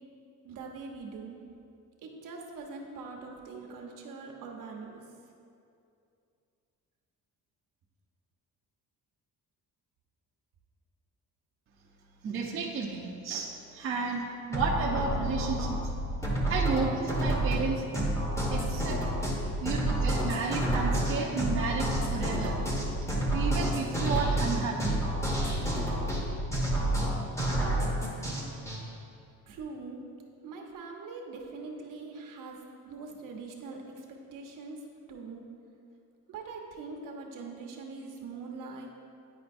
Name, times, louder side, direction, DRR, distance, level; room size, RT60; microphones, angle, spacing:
voice 1, 0.4-1.4 2.0-5.0 29.5-30.0 30.4-34.8 35.1-35.4 36.3-38.9, right 4 dB, 70° right, 0 dB, 0.9 m, -43 dB
voice 2, 12.2-15.8 16.5-17.8 18.5-19.0 19.6-22.6 23.3-25.1, right 4 dB, 40° right, -2 dB, 0.6 m, -32 dB
Another melody for a indie videogame or something, 14.5-28.8, right 1 dB, 10° left, 0.9 m, -29 dB
9.6 x 5.0 x 2.6 m, 2.5 s
cardioid pair, 150°, 34 cm